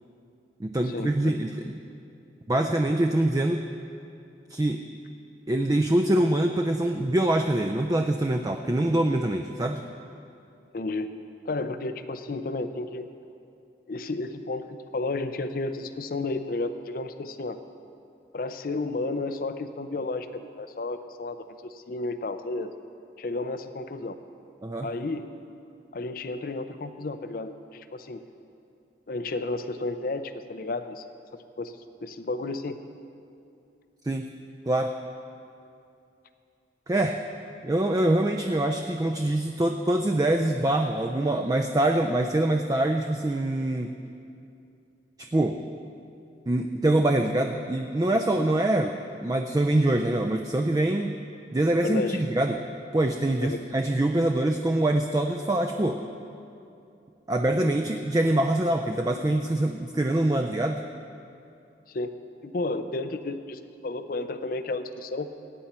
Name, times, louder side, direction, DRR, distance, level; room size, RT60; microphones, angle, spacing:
voice 1, 0.6-1.5 2.5-3.6 4.5-4.8 5.5-9.8 24.6-24.9 34.0-34.3 34.7-34.9 36.9-37.2 37.6-43.9 45.3-45.6 46.5-51.1 51.5-52.6 52.9-56.0 57.3-60.8, right 1 dB, 20° right, 4 dB, 0.4 m, -24 dB
voice 2, 10.7-11.2 11.5-13.1 13.9-17.6 18.3-22.7 23.2-24.2 24.8-25.3 25.9-28.2 29.1-31.1 31.6-32.8 51.8-52.2 53.4-53.6 61.9-62.1 62.4-65.3, left 2 dB, 50° left, 10 dB, 0.5 m, -32 dB
17.0 x 9.2 x 4.3 m, 2.6 s
head